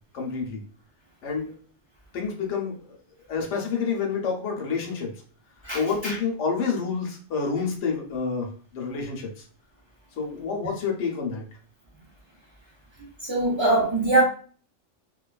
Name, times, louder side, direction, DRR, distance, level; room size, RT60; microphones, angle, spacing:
voice 1, 0.1-0.6 1.2-1.5 2.1-2.8 3.3-5.1 5.7-9.3 10.2-11.4, left 5 dB, 70° left, 0.9 m, -28 dB
voice 2, 5.6-6.2 13.2-14.2, right 2 dB, 50° right, 0.3 m, -22 dB
2.6 x 2.3 x 2.3 m
omnidirectional pair, 1.3 m